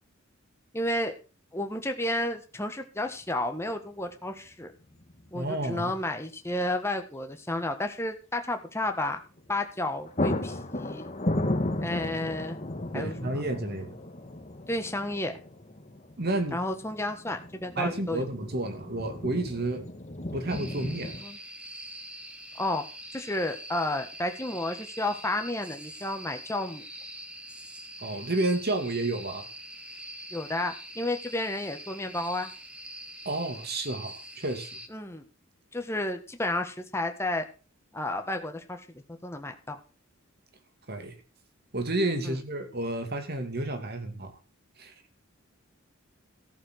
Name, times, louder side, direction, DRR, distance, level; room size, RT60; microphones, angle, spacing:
voice 1, 0.7-1.1 1.5-4.7 5.3-9.2 9.5-11.1 11.8-12.6 12.9-13.3 14.7-15.3 16.5-18.2 21.2-21.4 22.6-22.8 23.1-26.8 30.3-32.5 34.9-35.2 35.7-37.4 37.9-38.9 39.2-39.8 42.2-42.4, left 1 dB, 15° left, 5 dB, 1.5 m, -31 dB
sound 1, 3.2-3.3 4.9-5.3 5.6-5.7 9.4-9.6 9.8-21.2, left 1 dB, 35° left, 1.4 m, -35 dB
voice 2, 5.3-5.9 12.9-14.0 16.2-16.6 17.8-19.9 20.3-21.2 28.0-29.5 33.2-34.8 40.9-41.2 41.7-44.3 44.8-44.9, right 2 dB, 50° right, 7 dB, 2.5 m, -31 dB
sound 2, 20.5-34.9, right 1 dB, 5° right, 1.4 m, -44 dB
14.5 x 7.1 x 6.5 m, 0.34 s
head